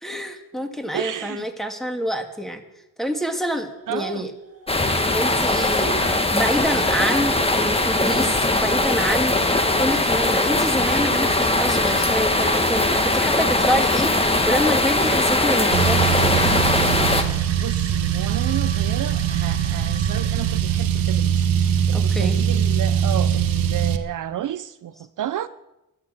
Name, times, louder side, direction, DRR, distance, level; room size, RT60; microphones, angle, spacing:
voice 1, 0.0-2.6 3.0-4.3 5.1-6.0 6.3-9.4 9.8-14.1 14.5-16.5 21.9-22.4, equal, ahead, 2.0 m, -26 dB
voice 2, 0.9-1.5 3.9-4.3 17.6-25.5, right 11 dB, 65° right, 0.6 m, -31 dB
sound 1, 4.3-20.6, right 3 dB, 45° right, 1.7 m, -39 dB
sound 2, 4.7-17.2, left 2 dB, 15° left, 1.6 m, -20 dB
Car, 15.7-24.0, right 9 dB, 85° right, 1.0 m, -21 dB
12.0 x 11.0 x 7.7 m
cardioid pair, 75°, 34 cm